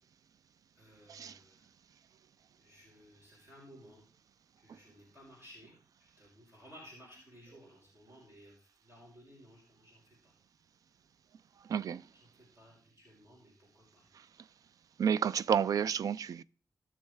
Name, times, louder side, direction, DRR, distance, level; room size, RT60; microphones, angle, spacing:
voice 1, 0.7-1.6 2.6-4.0 4.6-5.7 6.0-10.3 12.3-14.1, equal, 40° right, 5.9 m, -57 dB
voice 2, 11.7-12.0 15.0-16.4, right 7 dB, 70° right, 0.3 m, -30 dB
18.0 x 6.4 x 3.3 m
wide cardioid pair, 180°, 6 cm